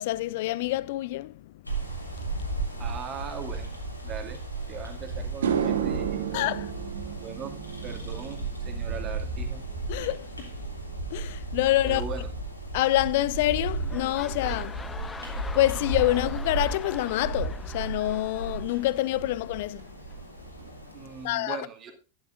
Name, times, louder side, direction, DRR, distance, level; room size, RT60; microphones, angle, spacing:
voice 1, 0.0-1.4 6.3-6.7 9.9-10.5 11.1-12.0 12.7-14.8 15.5-19.9 21.2-21.7, left 16 dB, 50° left, 0.4 m, -26 dB
sound 1, 1.7-21.3, right 2 dB, 85° left, 2.8 m, -35 dB
voice 2, 2.8-3.8 4.0-4.4 4.7-6.2 7.2-9.6 11.8-12.3 20.9-21.9, right 6 dB, 30° right, 2.4 m, -39 dB
sound 2, 4.7-4.8 5.2-13.7 14.0-14.4 18.0-18.1 19.8-19.9 20.2-20.3 20.6-21.1, right 8 dB, 65° right, 1.4 m, -35 dB
sound 3, 13.6-19.4 20.1-20.2, left 4 dB, 10° left, 0.9 m, -43 dB
12.0 x 12.0 x 2.6 m
figure-of-eight pair, 90°, 0 cm